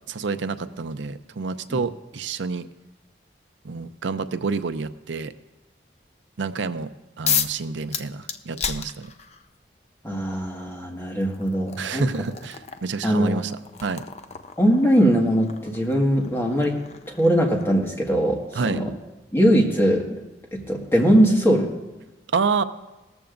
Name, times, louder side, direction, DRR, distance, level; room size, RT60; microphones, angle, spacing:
voice 1, 0.1-2.7 3.6-5.3 6.4-6.9 7.2-9.1 11.8-13.5 13.8-14.0 18.5-18.8 22.3-22.6, right 4 dB, 85° right, 11 dB, 0.5 m, -28 dB
sound 1, 7.3-7.6 7.9-9.5 10.6-10.7 11.2-17.9, left 7 dB, 35° left, 0.6 m, -32 dB
voice 2, 10.0-12.1 13.0-13.4 14.6-16.7 17.2-18.4 18.7-18.9 19.3-20.2 20.5-21.7, equal, 15° left, -1 dB, 1.7 m, -20 dB
18.5 x 14.0 x 2.6 m, 1.1 s
head